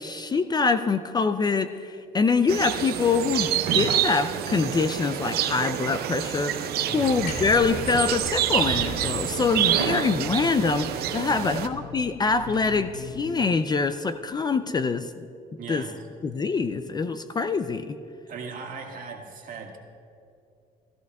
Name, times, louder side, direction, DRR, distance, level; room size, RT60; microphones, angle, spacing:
voice 1, 0.0-15.3 15.7-15.8 16.2-18.0, left 4 dB, 25° left, 10 dB, 0.4 m, -25 dB
sound 1, 2.5-11.7, right 10 dB, 70° right, 0.6 m, -27 dB
sound 2, 6.8-13.5, left 3 dB, 50° left, 1.0 m, -41 dB
voice 2, 6.8-7.2 11.3-11.6 15.6-16.1 18.3-19.8, right 5 dB, 55° right, 1 dB, 1.8 m, -38 dB
sound 3, 7.3-12.9 13.9-14.0, left 2 dB, 70° left, 1.9 m, -42 dB
16.5 x 14.0 x 2.3 m, 2.6 s
cardioid pair, 110°, 17 cm